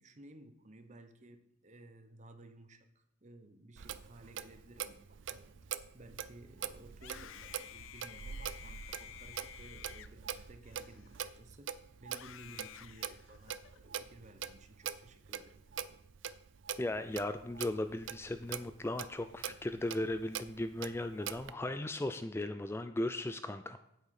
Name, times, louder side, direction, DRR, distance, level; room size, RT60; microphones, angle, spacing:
voice 1, 0.0-15.8, right 1 dB, 35° right, 8 dB, 0.9 m, -56 dB
Clock, 3.8-21.5, right 8 dB, 65° right, 0.5 m, -44 dB
Screaming, 6.9-11.4 12.1-13.8, left 10 dB, 75° left, 0.5 m, -52 dB
voice 2, 16.8-23.8, left 1 dB, 10° left, 10 dB, 0.3 m, -37 dB
8.8 x 8.0 x 5.4 m, 0.82 s
head